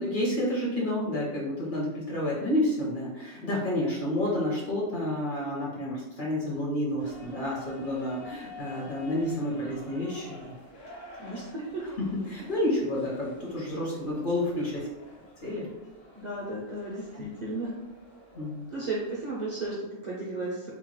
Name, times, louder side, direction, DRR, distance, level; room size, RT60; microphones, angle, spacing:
voice 1, 0.0-10.5 12.0-14.9 15.4-15.7 17.1-17.2 18.3-18.7, left 1 dB, 55° left, -4 dB, 0.6 m, -30 dB
sound 1, 7.0-19.7, left 1 dB, 75° left, 1.2 m, -49 dB
voice 2, 11.2-11.8 16.2-17.7 18.7-20.7, right 2 dB, 55° right, -6 dB, 0.5 m, -34 dB
2.8 x 2.2 x 2.9 m, 1.0 s
omnidirectional pair, 1.3 m